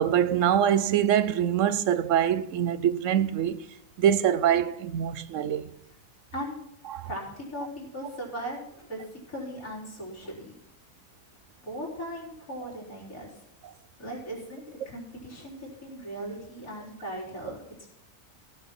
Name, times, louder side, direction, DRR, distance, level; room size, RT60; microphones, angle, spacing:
voice 1, 0.0-3.6 4.0-5.7 6.9-7.1, right 9 dB, 70° right, 1.0 m, -24 dB
voice 2, 7.0-10.5 11.6-13.4 14.0-17.9, equal, 90° left, 4.4 m, -38 dB
16.0 x 5.8 x 6.0 m
omnidirectional pair, 1.4 m